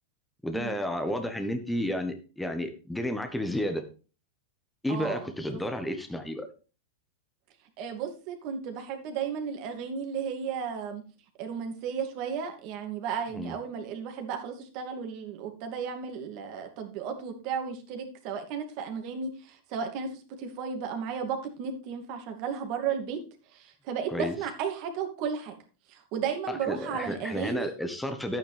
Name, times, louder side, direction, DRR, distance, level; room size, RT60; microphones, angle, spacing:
voice 1, 0.4-3.8 4.8-6.5 13.3-13.6 24.1-24.3 26.5-28.4, left 1 dB, 5° left, 6 dB, 1.3 m, -32 dB
voice 2, 4.9-5.2 5.5-5.6 7.8-11.0 11.4-23.2 23.5-25.6 25.9-27.7, right 7 dB, 50° right, 4 dB, 2.6 m, -34 dB
11.0 x 9.1 x 3.5 m, 0.35 s
hypercardioid pair, 125°, 0 cm